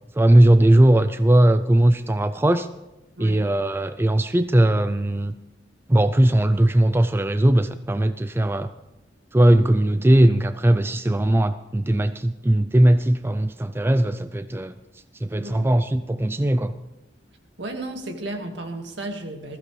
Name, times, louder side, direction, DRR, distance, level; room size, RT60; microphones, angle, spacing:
voice 1, 0.2-2.7 3.2-5.3 5.9-8.7 9.3-14.7 15.2-16.7, right 1 dB, 15° right, 11 dB, 0.4 m, -19 dB
voice 2, 15.4-15.7 17.6-19.6, right 1 dB, 70° right, 4 dB, 2.0 m, -33 dB
20.5 x 15.0 x 3.3 m, 1.0 s
head